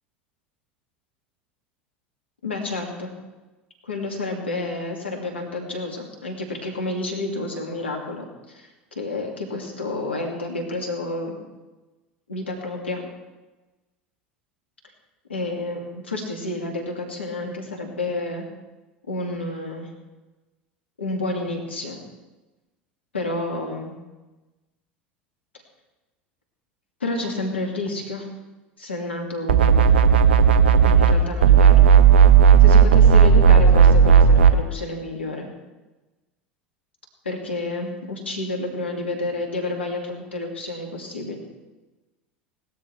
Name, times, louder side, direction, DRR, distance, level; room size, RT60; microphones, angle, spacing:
voice 1, 2.4-3.1 3.8-11.4 12.3-13.0 15.3-18.4 19.1-19.9 21.0-22.0 23.1-23.9 27.0-28.3 28.8-29.9 30.8-31.8 32.6-35.5 37.2-41.4, left 2 dB, 80° left, 1 dB, 2.4 m, -30 dB
sound 1, 29.5-31.2 31.4-34.5, right 7 dB, 70° right, 0.9 m, -13 dB
18.5 x 13.0 x 3.4 m, 1.1 s
figure-of-eight pair, 75°, 6 cm